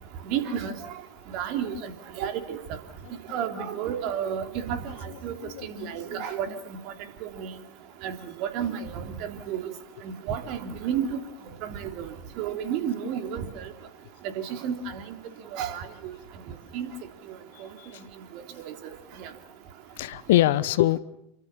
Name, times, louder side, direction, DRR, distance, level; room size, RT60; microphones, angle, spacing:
voice 1, 0.3-0.7 1.3-1.9 2.2-2.6 3.3-4.8 5.2-5.4 5.6-6.5 7.2-7.5 8.0-8.2 8.4-9.6 10.0-11.2 11.6-12.1 12.4-13.5 14.4-15.2 15.5-15.8 16.7-16.9 19.2-19.3, right 8 dB, 40° right, 7 dB, 3.5 m, -31 dB
voice 2, 5.1-6.5 17.8-18.0 20.0-21.0, left 15 dB, 55° left, 17 dB, 1.1 m, -26 dB
29.5 x 24.5 x 7.4 m, 0.79 s
figure-of-eight pair, 90°, 0 cm